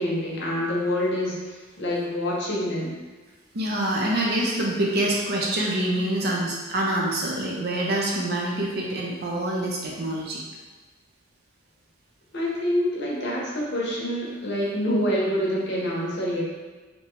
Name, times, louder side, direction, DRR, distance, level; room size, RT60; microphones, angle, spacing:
voice 1, 0.0-2.9 12.3-16.4, equal, 60° left, -5 dB, 0.7 m, -26 dB
voice 2, 3.5-10.4, right 1 dB, 55° right, -3 dB, 0.5 m, -26 dB
2.7 x 2.2 x 3.0 m, 1.3 s
head